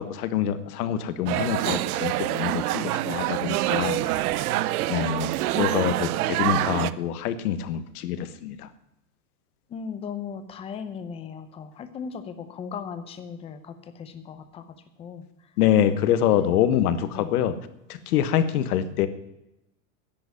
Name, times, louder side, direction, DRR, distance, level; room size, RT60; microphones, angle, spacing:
voice 1, 0.0-4.5 4.9-8.7 15.6-17.6 17.9-19.1, left 10 dB, 70° left, 11 dB, 1.4 m, -25 dB
sound 1, 1.3-6.9, right 15 dB, 70° right, 0.7 m, -26 dB
voice 2, 9.7-15.2 16.3-16.5 17.1-17.3 18.4-18.6, left 6 dB, 15° left, 10 dB, 0.6 m, -37 dB
10.5 x 8.0 x 9.8 m, 0.88 s
supercardioid pair, 165°, 46 cm